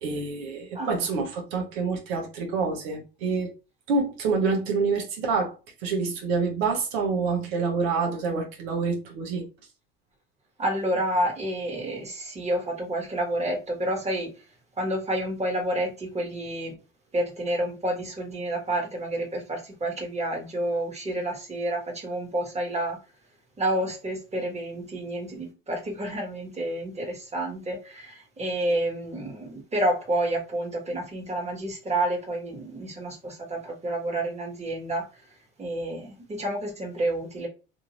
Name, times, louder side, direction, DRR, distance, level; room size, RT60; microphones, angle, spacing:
voice 1, 0.0-3.5 3.9-5.6 5.8-9.5, right 4 dB, 85° right, 0.9 m, -27 dB
voice 2, 10.6-14.3 14.8-16.7 17.1-23.0 23.6-35.1 35.6-37.5, right 1 dB, 20° right, 1.3 m, -29 dB
2.6 x 2.6 x 2.9 m
supercardioid pair, 80°, 30 cm